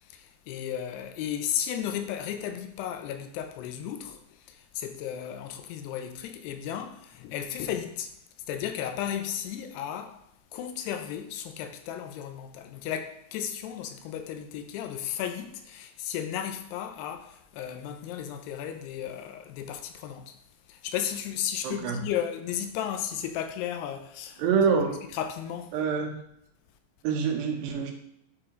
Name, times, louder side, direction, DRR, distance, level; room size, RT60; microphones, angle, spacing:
voice 1, 0.0-8.1 8.5-10.2 10.5-20.3 20.7-24.4 25.1-25.7, left 9 dB, 85° left, 2.8 m, -34 dB
voice 2, 21.6-22.0 24.4-25.0 25.7-26.2 27.0-27.9, right 6 dB, 85° right, 3.1 m, -26 dB
8.1 x 4.7 x 3.7 m
omnidirectional pair, 4.7 m